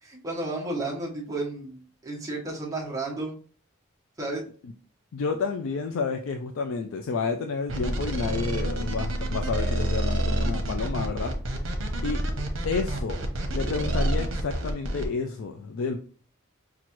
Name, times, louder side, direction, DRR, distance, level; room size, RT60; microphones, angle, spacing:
voice 1, 0.0-3.4 4.2-4.4, right 2 dB, 15° right, -3 dB, 1.1 m, -32 dB
voice 2, 5.1-11.3 12.0-12.2 12.6-13.2 13.5-16.0, left 4 dB, 85° left, 6 dB, 0.4 m, -30 dB
sound 1, 7.7-15.1, right 1 dB, 70° right, 0.9 m, -28 dB
5.9 x 2.4 x 3.0 m, 0.43 s
head